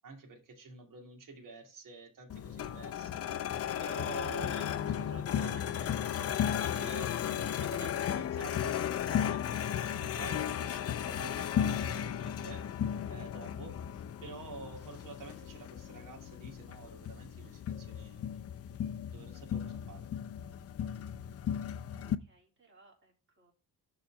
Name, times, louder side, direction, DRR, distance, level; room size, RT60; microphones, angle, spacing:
voice 1, 0.0-12.7 13.1-18.4 19.1-20.1, right 3 dB, 55° right, 2.7 m, -49 dB
sound 1, 2.3-22.2, left 9 dB, 40° left, 0.6 m, -35 dB
voice 2, 22.0-23.5, right 3 dB, 30° right, 3.7 m, -64 dB
11.0 x 4.1 x 6.1 m
cardioid pair, 165°, 38 cm